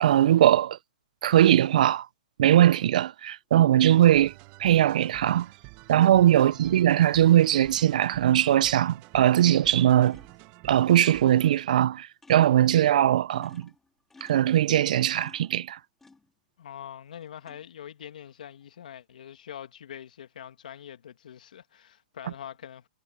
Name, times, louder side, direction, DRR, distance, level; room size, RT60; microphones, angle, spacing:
voice 1, 0.0-0.8 1.2-2.1 2.4-4.3 4.6-5.5 5.9-10.2 10.6-13.7 14.2-15.8, right 12 dB, 65° right, 0.4 m, -20 dB
sound 1, 3.2-3.3 7.3-7.5 8.5-8.9 9.2-10.7 11.5-11.6 11.9-12.0 12.2-12.7 13.1-16.8 17.1-17.8 18.3-18.8, left 3 dB, 5° left, 3.7 m, -57 dB
sound 2, 3.9-11.9, right 22 dB, 35° right, 1.3 m, -48 dB
voice 2, 6.4-6.7 16.6-22.9, left 9 dB, 75° left, 2.0 m, -44 dB
hypercardioid pair, 150°, 4 cm